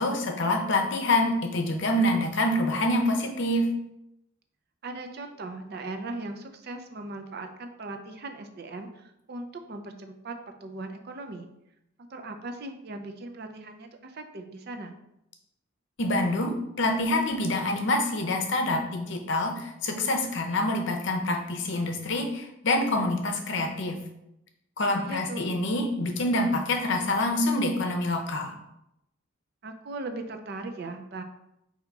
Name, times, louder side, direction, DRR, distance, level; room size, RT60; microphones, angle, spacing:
voice 1, 0.0-3.7 16.0-24.0 24.8-28.5, left 1 dB, 60° left, 4 dB, 0.6 m, -26 dB
voice 2, 4.8-11.5 12.1-14.9 24.9-25.5 29.6-31.2, right 2 dB, 50° right, 6 dB, 0.5 m, -39 dB
3.9 x 2.8 x 4.6 m, 0.84 s
head